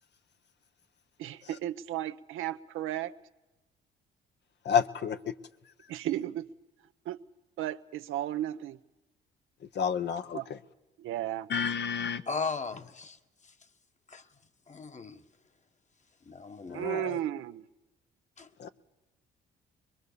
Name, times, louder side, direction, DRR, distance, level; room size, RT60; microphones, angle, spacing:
voice 1, 1.2-3.1 5.9-6.5 7.0-7.2 7.6-8.8 10.3-10.5 11.0-11.5 16.7-17.6, right 13 dB, 75° right, 0.8 m, -34 dB
voice 2, 4.6-5.3 9.7-10.4 11.5-12.2 16.7-17.2 18.6-18.7, left 7 dB, 55° left, 1.1 m, -29 dB
voice 3, 12.3-13.2 14.1-14.2 14.7-15.2 16.3-16.8 18.4-18.5, left 4 dB, 35° left, 1.5 m, -36 dB
23.0 x 22.0 x 6.9 m
supercardioid pair, 70°, 21 cm